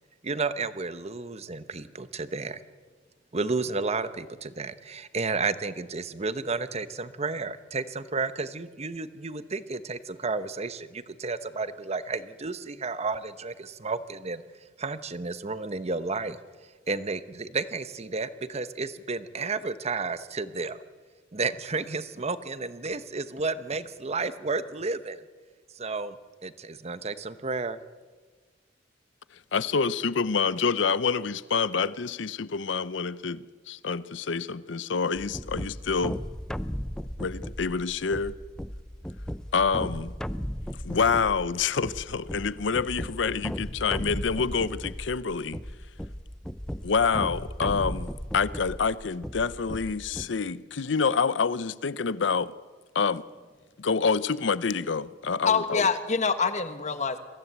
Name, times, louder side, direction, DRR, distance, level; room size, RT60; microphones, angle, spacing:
voice 1, 0.2-2.6 3.3-14.4 14.8-16.4 16.9-20.8 21.3-25.2 25.7-26.2 26.4-27.8, right 3 dB, 35° right, 0.9 m, -32 dB
voice 2, 29.5-36.2 37.2-38.4 39.5-40.1 40.8-45.6 46.8-52.5 52.9-53.2 53.8-55.9, left 5 dB, 70° left, 0.6 m, -27 dB
sound 1, 35.1-50.3, equal, 5° left, 0.6 m, -36 dB
voice 3, 55.4-57.2, left 5 dB, 40° left, 1.4 m, -25 dB
23.5 x 15.5 x 8.1 m
head